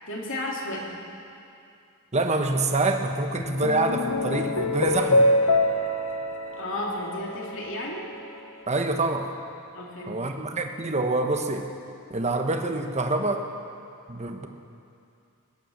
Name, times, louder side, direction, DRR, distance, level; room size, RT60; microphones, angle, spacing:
voice 1, 0.1-1.0 6.5-8.0 9.7-10.2, left 1 dB, 60° left, -2 dB, 3.0 m, -33 dB
voice 2, 2.1-5.3 8.7-9.3 10.1-11.6 12.1-13.4 14.1-14.5, right 2 dB, 30° right, 4 dB, 1.1 m, -26 dB
sound 1, 3.4-8.0, left 1 dB, 80° left, 1.1 m, -25 dB
21.5 x 10.0 x 6.6 m, 2.6 s
head